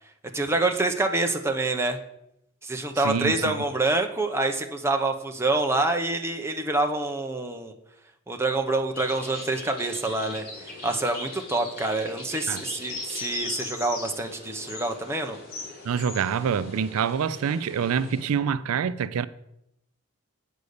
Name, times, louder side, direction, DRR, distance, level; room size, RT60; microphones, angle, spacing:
voice 1, 0.3-2.0 2.6-7.7 8.3-10.4 10.8-15.4, right 2 dB, 10° right, 0.8 m, -26 dB
voice 2, 3.0-3.6 12.5-12.6 15.8-19.3, right 7 dB, 85° right, 0.4 m, -26 dB
sound 1, 8.9-18.2, left 2 dB, 45° left, 3.0 m, -39 dB
8.4 x 5.3 x 6.6 m
head